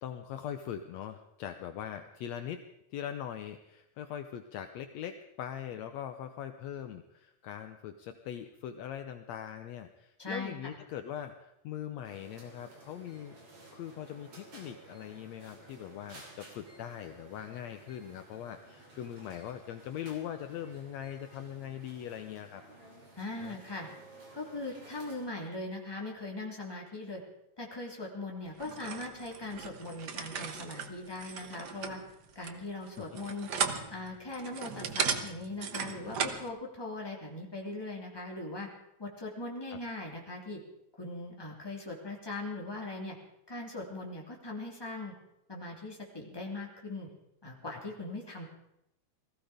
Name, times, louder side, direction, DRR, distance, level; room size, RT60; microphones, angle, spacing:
voice 1, 0.0-2.7 2.9-13.4 13.7-22.6 23.4-23.6 33.0-33.1, left 10 dB, 75° left, 8 dB, 1.8 m, -41 dB
voice 2, 10.2-10.8 23.2-23.9 24.3-27.2 27.6-32.0 32.3-33.5 33.9-38.7 39.0-40.6 41.0-43.2 43.5-45.1 45.5-47.1 47.4-48.4, left 2 dB, 10° left, -1 dB, 2.8 m, -40 dB
sound 1, 12.0-25.3, right 2 dB, 50° right, 3.9 m, -54 dB
sound 2, 28.6-36.5, right 6 dB, 70° right, 0.9 m, -37 dB
19.5 x 15.0 x 5.0 m, 0.83 s
omnidirectional pair, 3.5 m